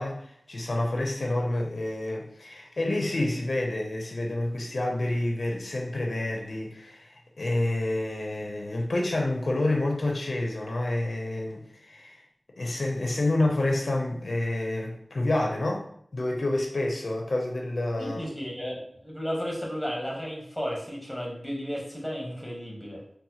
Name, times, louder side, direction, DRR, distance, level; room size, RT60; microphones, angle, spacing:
voice 1, 0.0-12.2 12.6-15.9 16.1-18.2, left 1 dB, 70° left, 0 dB, 0.5 m, -28 dB
voice 2, 18.0-23.0, equal, ahead, -2 dB, 1.0 m, -33 dB
4.0 x 2.1 x 2.8 m, 0.67 s
wide cardioid pair, 70°, 0 cm